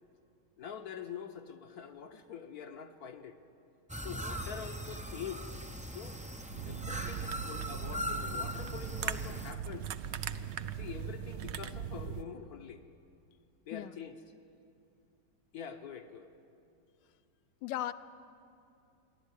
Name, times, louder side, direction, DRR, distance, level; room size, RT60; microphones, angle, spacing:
voice 1, 0.6-3.4 4.0-5.5 5.8-6.2 6.6-9.9 10.8-12.8 13.6-14.2 15.5-16.3, left 8 dB, 60° left, 6 dB, 1.3 m, -45 dB
sound 1, 3.9-9.5, equal, 10° right, 0.3 m, -40 dB
sound 2, 6.5-12.2, right 8 dB, 80° right, 0.6 m, -39 dB
voice 2, 17.6-17.9, left 13 dB, 80° left, 14 dB, 1.4 m, -36 dB
27.5 x 11.5 x 9.9 m, 2.5 s
omnidirectional pair, 2.0 m